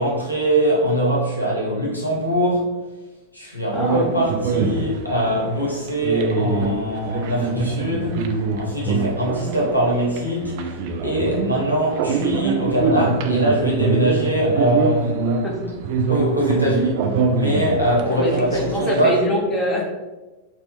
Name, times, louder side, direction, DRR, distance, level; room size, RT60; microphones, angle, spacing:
voice 1, 0.0-2.7 3.3-8.2 8.6-10.5 11.0-15.4 16.1-17.0 17.3-19.2, equal, 90° left, -4 dB, 0.9 m, -22 dB
voice 2, 3.7-4.1 15.4-15.7 18.0-19.8, equal, 20° left, -1 dB, 0.7 m, -24 dB
sound 1, 3.7-19.0, right 4 dB, 45° right, 0.3 m, -24 dB
4.1 x 2.0 x 2.9 m, 1.1 s
figure-of-eight pair, 90°, 0 cm